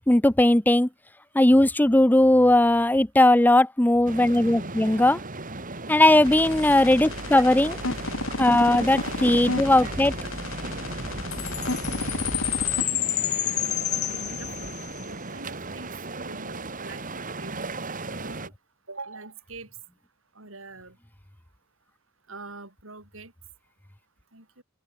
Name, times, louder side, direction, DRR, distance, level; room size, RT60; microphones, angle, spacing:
voice 1, 0.1-0.9 1.4-5.2 5.9-7.7 8.4-10.1, left 1 dB, 10° left, 0.7 m, -18 dB
sound 1, 4.1-18.5, right 2 dB, 45° right, 3.9 m, -36 dB
sound 2, 6.2-12.8, left 2 dB, 90° left, 2.3 m, -33 dB
Chime, 11.3-15.0, left 14 dB, 55° left, 1.4 m, -29 dB
voice 2, 12.8-13.3 13.6-17.7 18.1-18.5 18.9-19.8 20.3-21.0 22.3-23.3 24.3-24.6, right 3 dB, 90° right, 7.2 m, -44 dB
open air
head